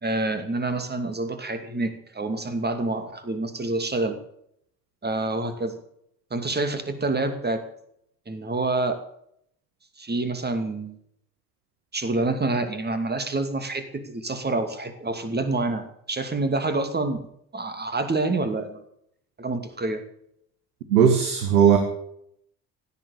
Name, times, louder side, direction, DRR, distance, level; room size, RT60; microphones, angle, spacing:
voice 1, 0.0-4.2 5.0-5.8 6.3-7.6 8.3-9.0 10.0-11.0 11.9-17.2 17.5-18.8 19.4-20.0, right 2 dB, 20° right, 9 dB, 2.6 m, -27 dB
voice 2, 20.9-21.8, right 8 dB, 75° right, 6 dB, 1.8 m, -17 dB
16.5 x 10.5 x 6.7 m, 0.71 s
figure-of-eight pair, 50°, 45 cm